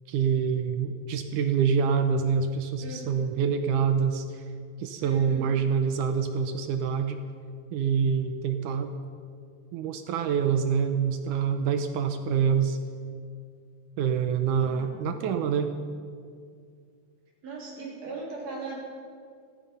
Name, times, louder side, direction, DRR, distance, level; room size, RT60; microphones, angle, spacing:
voice 1, 0.1-4.3 4.8-7.2 7.7-8.9 9.7-12.8 14.0-15.7, right 7 dB, 75° right, 8 dB, 2.1 m, -26 dB
voice 2, 2.8-3.4 5.0-5.5 14.6-15.2 17.4-18.7, right 3 dB, 50° right, -3 dB, 4.6 m, -39 dB
17.0 x 14.5 x 5.5 m, 2.2 s
omnidirectional pair, 4.1 m